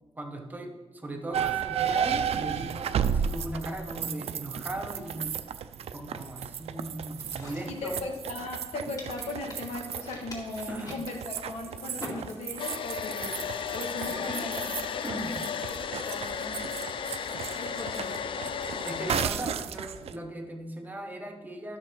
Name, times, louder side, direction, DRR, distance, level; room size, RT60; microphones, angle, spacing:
voice 1, 0.2-5.4 5.9-8.0 10.7-11.0 14.0-14.5 15.0-15.3 18.8-21.8, right 1 dB, 15° right, 3 dB, 0.9 m, -38 dB
sound 1, 1.3-20.2, right 8 dB, 75° right, 0.4 m, -34 dB
sound 2, 7.1-8.6 9.0-12.8 13.1-13.5 13.9-16.3, left 1 dB, 35° left, 2.1 m, -46 dB
voice 2, 7.6-15.5 15.8-16.6 17.5-18.3, left 2 dB, 85° left, 1 dB, 1.7 m, -38 dB
Domestic sounds home sounds, 12.6-19.3, left 7 dB, 55° left, 0.4 m, -34 dB
12.5 x 6.4 x 4.5 m, 1.2 s
wide cardioid pair, 180°, 11 cm